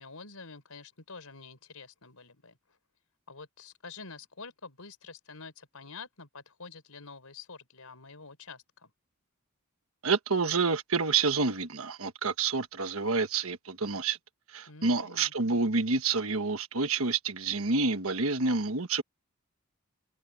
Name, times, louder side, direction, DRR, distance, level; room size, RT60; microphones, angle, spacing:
voice 1, 0.0-2.6 3.3-8.9 14.7-15.6, left 4 dB, 85° left, 4.2 m, -48 dB
voice 2, 10.0-14.2 14.5-19.0, right 4 dB, 70° right, 1.4 m, -28 dB
head